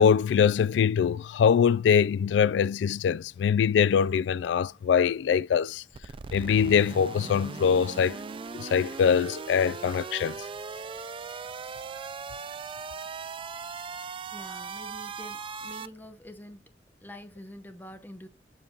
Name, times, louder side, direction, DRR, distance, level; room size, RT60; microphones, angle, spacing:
voice 1, 0.0-5.8 6.3-8.2 8.5-10.4, left 7 dB, 90° left, 0.3 m, -23 dB
sound 1, 5.9-15.9, right 5 dB, 30° right, 0.3 m, -39 dB
voice 2, 14.3-16.6 17.0-18.3, left 1 dB, 10° left, 0.8 m, -46 dB
7.2 x 5.6 x 2.4 m
head